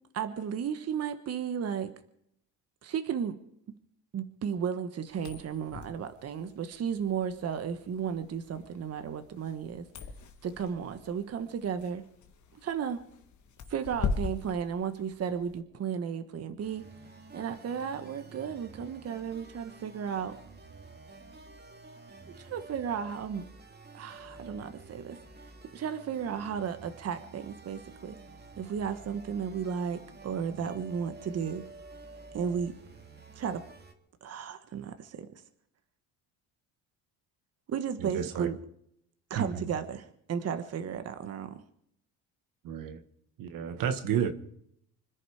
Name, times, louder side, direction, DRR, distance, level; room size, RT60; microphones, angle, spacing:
voice 1, 0.1-1.9 2.8-3.3 4.1-9.8 10.4-12.0 12.6-13.0 13.7-16.8 17.3-20.3 22.3-23.4 23.9-25.2 25.7-28.2 28.6-31.6 32.3-32.7 33.3-33.6 34.2-35.3 37.7-38.6 39.3-41.6, right 7 dB, 45° right, 9 dB, 1.4 m, -34 dB
sound 1, 5.1-15.6, left 5 dB, 55° left, 1.9 m, -40 dB
sound 2, 16.6-33.9, right 3 dB, 30° right, 2.4 m, -50 dB
voice 2, 38.0-38.5 39.3-39.7 42.6-43.0 43.4-44.3, right 8 dB, 65° right, 9 dB, 1.6 m, -31 dB
25.5 x 11.0 x 5.0 m, 0.72 s
cardioid pair, 105°, 36 cm